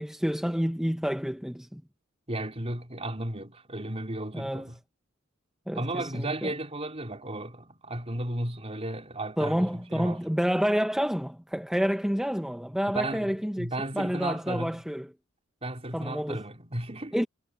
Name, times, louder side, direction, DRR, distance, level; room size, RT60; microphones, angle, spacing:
voice 1, 0.0-1.8 4.3-4.7 5.7-6.5 9.4-13.7 13.9-15.1 15.9-16.4 17.1-17.3, equal, 5° right, 0.9 m, -29 dB
voice 2, 2.3-4.8 5.7-10.2 12.9-14.8 15.6-17.3, right 1 dB, 30° right, 4.2 m, -34 dB
head